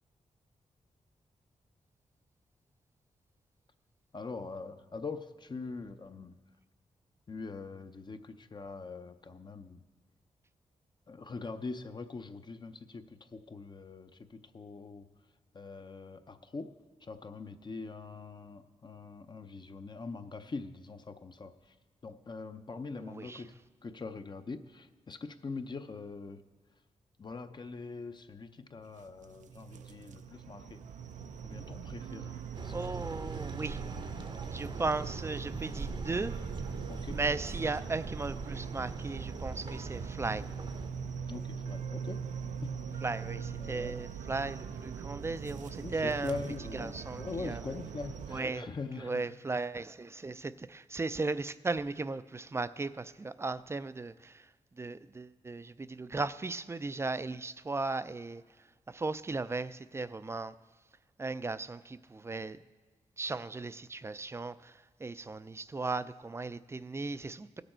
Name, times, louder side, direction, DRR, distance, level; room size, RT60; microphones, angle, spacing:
voice 1, 4.1-6.4 7.3-9.8 11.1-15.1 15.5-16.7 17.0-21.7 22.0-23.5 23.8-26.4 27.2-30.8 31.4-32.7 36.9-37.2 41.3-42.2 42.6-43.0 43.6-44.0 45.8-49.4, left 4 dB, 35° left, 0.6 m, -43 dB
voice 2, 22.9-23.4 32.7-33.8 34.5-36.4 37.1-40.4 43.0-46.4 46.7-47.8 48.3-48.7 49.0-54.5 54.8-58.4 58.9-60.5 61.2-62.6 63.2-67.6, right 3 dB, 20° right, 0.3 m, -36 dB
sound 1, 28.9-48.4, right 6 dB, 85° right, 0.5 m, -41 dB
sound 2, 32.5-40.9, right 3 dB, 40° right, 0.7 m, -42 dB
17.0 x 6.7 x 4.4 m
cardioid pair, 75°, 12 cm